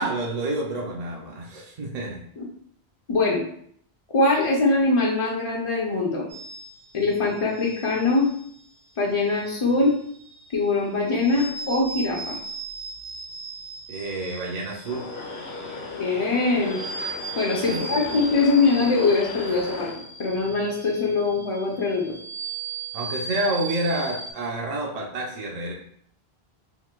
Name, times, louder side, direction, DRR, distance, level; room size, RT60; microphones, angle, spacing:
voice 1, 0.0-2.2 13.9-15.0 17.6-18.2 22.9-25.7, right 2 dB, 55° right, -1 dB, 0.5 m, -29 dB
voice 2, 3.1-3.4 4.1-6.3 6.9-8.3 9.0-9.9 10.5-12.4 16.0-16.8 17.4-19.9 20.2-22.1, left 3 dB, 45° left, -3 dB, 0.4 m, -22 dB
sound 1, 6.3-24.3, right 3 dB, 75° right, 1.4 m, -38 dB
sound 2, 14.8-20.0, left 4 dB, 80° left, 0.8 m, -36 dB
3.7 x 2.5 x 2.2 m, 0.64 s
omnidirectional pair, 1.0 m